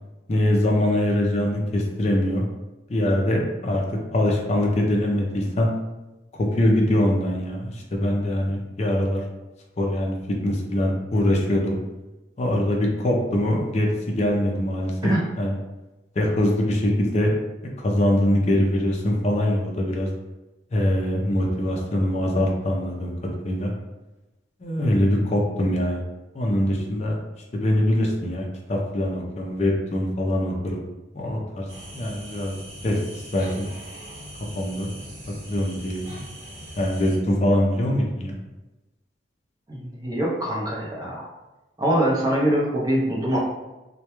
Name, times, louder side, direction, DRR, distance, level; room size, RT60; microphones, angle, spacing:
voice 1, 0.3-2.4 2.9-3.8 4.1-5.7 6.4-9.2 9.8-10.2 10.4-11.8 12.4-14.9 15.4-15.5 16.2-17.3 17.8-20.1 20.7-23.1 23.4-23.7 24.6-26.0 26.3-27.2 27.5-30.9 31.1-31.7 31.9-32.5 32.8-33.7 34.5-34.9 35.5-36.1 36.8-38.4, left 1 dB, 35° left, 0 dB, 0.4 m, -23 dB
sound 1, 31.7-37.2, equal, 75° right, 0.8 m, -41 dB
voice 2, 39.7-41.3 41.8-43.4, right 1 dB, 20° right, -4 dB, 0.6 m, -23 dB
2.2 x 2.1 x 2.9 m, 1.1 s
head